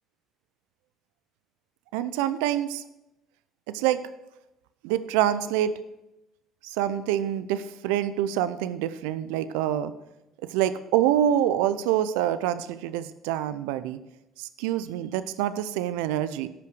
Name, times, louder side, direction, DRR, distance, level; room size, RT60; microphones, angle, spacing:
voice 1, 1.9-2.8 3.7-4.0 4.8-5.7 6.6-9.9 10.4-14.0 14.4-16.5, right 11 dB, 80° right, 14 dB, 0.5 m, -26 dB
13.0 x 5.7 x 6.3 m, 0.93 s
hypercardioid pair, 70°, 0 cm